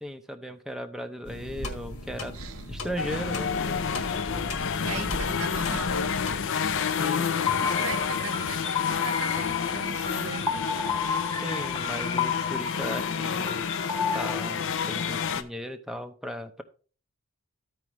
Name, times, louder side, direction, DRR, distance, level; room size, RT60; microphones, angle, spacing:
voice 1, 0.0-2.4 2.7-3.9 7.0-7.4 11.4-13.8 14.1-16.6, equal, ahead, 0.5 m, -37 dB
sound 1, 1.2-6.4, left 1 dB, 75° left, 1.6 m, -37 dB
voice 2, 2.3-2.7 4.8-6.0 7.6-10.5, right 6 dB, 65° right, 0.6 m, -39 dB
sound 2, 3.0-15.4, left 6 dB, 60° left, 0.6 m, -29 dB
sound 3, 7.5-14.3, left 6 dB, 15° left, 0.9 m, -32 dB
14.5 x 4.8 x 3.1 m
head